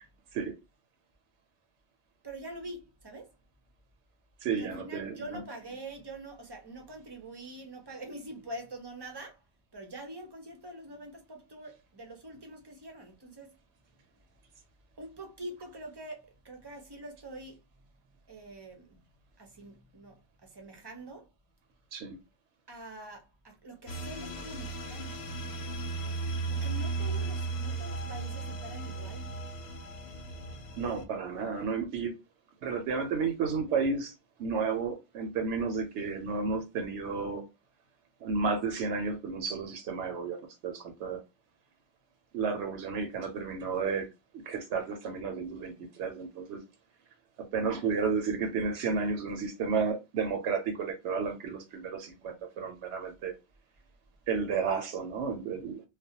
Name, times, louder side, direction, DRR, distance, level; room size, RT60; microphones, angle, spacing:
voice 1, 2.2-3.3 4.5-9.4 9.7-13.5 15.0-17.6 18.3-19.0 19.4-21.3 22.7-25.2 26.5-29.4, right 1 dB, 35° right, 0.4 m, -45 dB
voice 2, 4.4-5.4 21.9-22.2 30.8-32.1 32.6-34.1 34.4-37.4 38.2-41.2 42.3-44.1 44.5-46.6 47.5-53.3 54.3-55.8, right 5 dB, 85° right, 0.9 m, -32 dB
sound 1, 23.9-31.0, right 3 dB, 70° left, 0.8 m, -35 dB
2.3 x 2.0 x 2.7 m
omnidirectional pair, 1.1 m